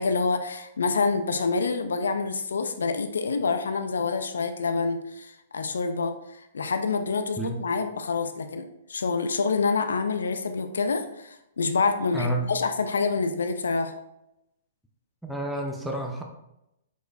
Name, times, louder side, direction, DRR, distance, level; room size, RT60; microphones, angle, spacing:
voice 1, 0.0-8.6 8.9-13.9, left 4 dB, 70° left, 7 dB, 0.4 m, -27 dB
voice 2, 12.1-12.5 15.2-16.2, right 1 dB, ahead, 0 dB, 0.5 m, -29 dB
4.6 x 4.0 x 2.3 m, 0.86 s
figure-of-eight pair, 115°, 0 cm